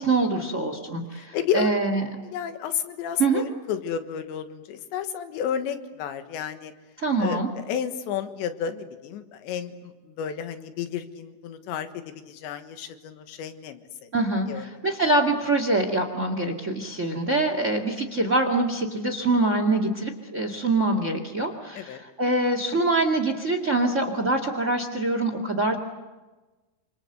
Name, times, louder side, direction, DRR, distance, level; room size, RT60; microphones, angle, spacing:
voice 1, 0.0-2.1 3.2-3.4 7.0-7.5 14.1-25.7, right 2 dB, 75° right, 5 dB, 0.7 m, -24 dB
voice 2, 1.1-1.7 2.2-6.7 7.2-14.1 14.5-14.7 21.8-22.0, left 8 dB, 75° left, 8 dB, 3.6 m, -32 dB
27.5 x 27.0 x 8.0 m, 1.2 s
omnidirectional pair, 5.4 m